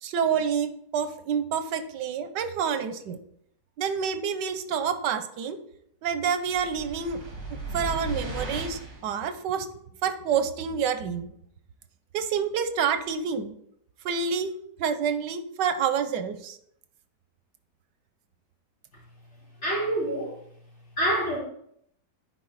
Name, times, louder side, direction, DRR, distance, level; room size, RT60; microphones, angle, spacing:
voice 1, 0.0-3.2 3.8-5.6 6.0-7.2 7.7-9.7 10.0-11.3 12.1-13.5 14.0-14.5 14.8-16.6, right 7 dB, 85° right, 10 dB, 1.4 m, -28 dB
sound 1, 6.4-9.1, right 1 dB, 60° right, 2.4 m, -36 dB
voice 2, 19.6-20.3 21.0-21.4, right 1 dB, 40° left, -6 dB, 3.4 m, -26 dB
9.9 x 4.8 x 4.1 m, 0.69 s
omnidirectional pair, 1.8 m